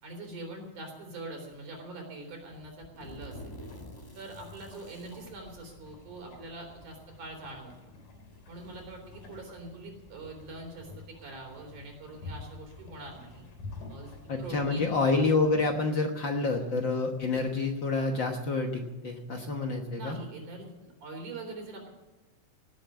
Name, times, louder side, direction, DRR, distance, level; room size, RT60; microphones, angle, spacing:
voice 1, 0.0-3.5 4.2-7.7 8.5-13.5 13.9-14.1 14.4-15.0 16.5-16.7 19.9-21.9, right 2 dB, 85° right, 1 dB, 5.3 m, -43 dB
sound 1, 1.5-1.9 2.4-5.4 6.5-6.6 7.5-7.6 8.1-9.6, equal, 15° left, 0.8 m, -49 dB
sound 2, 3.2-15.8, left 3 dB, 75° left, 4.4 m, -49 dB
voice 2, 14.3-20.2, left 3 dB, 50° left, 3 dB, 1.5 m, -28 dB
17.5 x 8.2 x 9.4 m, 1.1 s
omnidirectional pair, 3.4 m